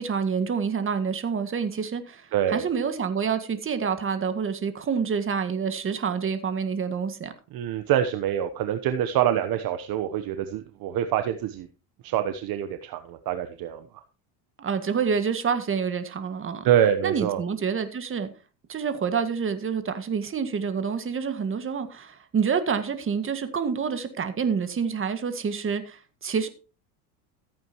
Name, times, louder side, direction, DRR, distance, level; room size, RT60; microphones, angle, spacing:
voice 1, 0.0-7.3 14.6-16.7 17.0-18.3 18.7-26.5, right 6 dB, 25° right, 1.8 m, -27 dB
voice 2, 2.3-2.7 7.5-11.7 12.0-13.8 16.6-17.4, right 10 dB, 45° right, 1.1 m, -25 dB
14.5 x 8.9 x 3.0 m
supercardioid pair, 105°, 48 cm